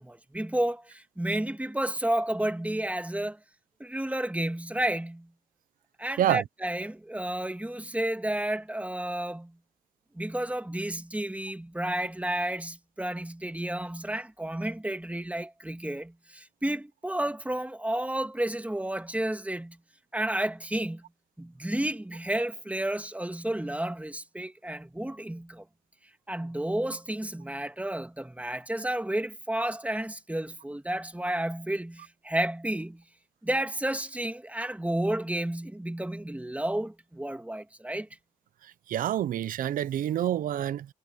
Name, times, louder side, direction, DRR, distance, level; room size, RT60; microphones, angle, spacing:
voice 1, 0.0-3.4 3.8-5.3 6.0-9.6 10.1-19.8 20.1-21.0 21.4-25.6 26.3-33.0 33.4-38.1, right 1 dB, 10° right, 2.1 m, -31 dB
voice 2, 38.9-40.9, right 11 dB, 80° right, 0.6 m, -27 dB
supercardioid pair, 50°, 14 cm